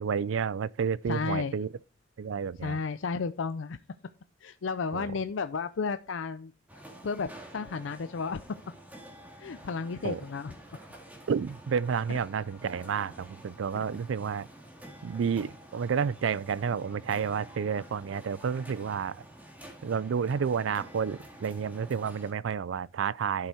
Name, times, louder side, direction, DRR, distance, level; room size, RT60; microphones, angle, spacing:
voice 1, 0.0-1.7 2.2-2.8 4.9-5.1 10.0-10.2 11.3-14.5 15.0-19.2 19.8-23.5, right 6 dB, 85° right, 0.4 m, -30 dB
voice 2, 1.1-1.5 2.6-3.8 4.4-6.5 7.0-8.4 9.4-10.5, left 5 dB, 80° left, 0.5 m, -33 dB
sound 1, 6.7-22.3, right 1 dB, 10° right, 2.1 m, -49 dB
11.5 x 6.9 x 4.4 m
head